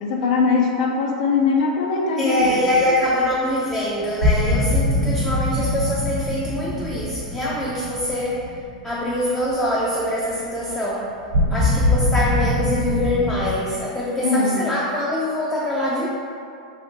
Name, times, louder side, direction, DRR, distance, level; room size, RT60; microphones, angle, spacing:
voice 1, 0.0-2.9 14.2-14.7, left 4 dB, 65° left, 1 dB, 0.5 m, -21 dB
voice 2, 2.2-8.5 8.8-11.1 11.5-16.1, left 1 dB, 10° left, -5 dB, 0.4 m, -24 dB
sound 1, 2.5-2.6 2.8-2.9 4.2-9.3 11.3-13.6, left 1 dB, 90° right, 0.7 m, -22 dB
3.2 x 2.7 x 2.9 m, 2.5 s
hypercardioid pair, 125°, 4 cm